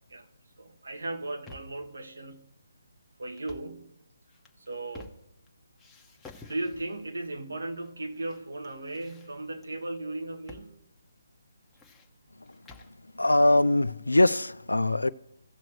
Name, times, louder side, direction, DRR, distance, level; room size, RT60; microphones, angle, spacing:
voice 1, 0.6-2.5 3.2-4.0 4.6-5.2 6.4-10.8, right 2 dB, 75° right, 1.4 m, -36 dB
sound 1, 1.1-1.9 3.3-3.8 4.3-5.5 5.8-7.1 7.8-8.4 8.6-9.7 10.5-10.7 11.0-11.1 11.5-13.0, left 3 dB, 10° left, 0.9 m, -51 dB
voice 2, 13.2-15.1, left 1 dB, 90° left, 0.4 m, -22 dB
16.5 x 6.2 x 3.2 m
figure-of-eight pair, 145°, 0 cm